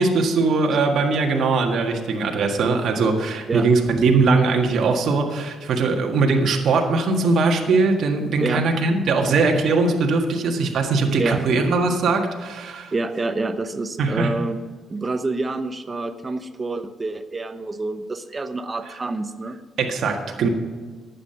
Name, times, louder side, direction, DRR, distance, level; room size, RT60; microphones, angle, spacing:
voice 1, 0.0-12.9 14.0-14.4 18.8-18.9 19.8-20.5, right 3 dB, 65° right, 2 dB, 1.6 m, -20 dB
voice 2, 12.9-14.6 14.9-19.6, right 3 dB, 30° right, 10 dB, 0.9 m, -27 dB
11.5 x 8.6 x 5.7 m, 1.5 s
cardioid pair, 90°, 0 cm